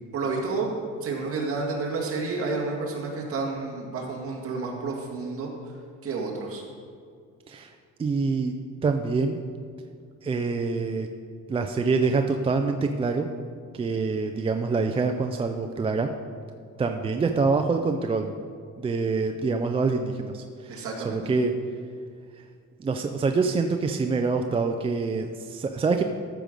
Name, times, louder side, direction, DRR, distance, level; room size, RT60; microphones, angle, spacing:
voice 1, 0.1-5.5 6.0-6.6 20.7-21.2, right 3 dB, 45° right, -2 dB, 2.1 m, -30 dB
voice 2, 8.0-8.5 8.8-9.4 10.2-11.1 11.5-13.3 13.7-16.1 16.8-18.3 18.8-21.5 22.8-26.0, right 4 dB, 20° right, 5 dB, 0.3 m, -25 dB
14.0 x 6.3 x 5.2 m, 2.2 s
cardioid pair, 175°, 31 cm